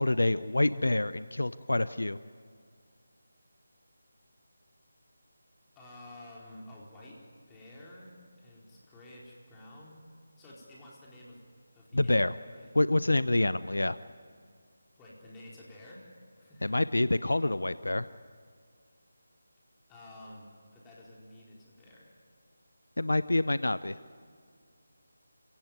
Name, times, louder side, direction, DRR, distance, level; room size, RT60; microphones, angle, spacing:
voice 1, 0.0-2.2 11.9-12.3 12.7-14.0 16.6-18.1 23.0-24.0, left 2 dB, 75° left, 16 dB, 0.7 m, -27 dB
voice 2, 5.8-7.2 7.5-10.0 10.4-11.4 11.7-12.7 15.0-16.1 16.4-16.9 19.9-22.2, left 1 dB, 10° left, -4 dB, 4.3 m, -51 dB
26.5 x 17.5 x 9.3 m, 2.1 s
figure-of-eight pair, 160°, 0 cm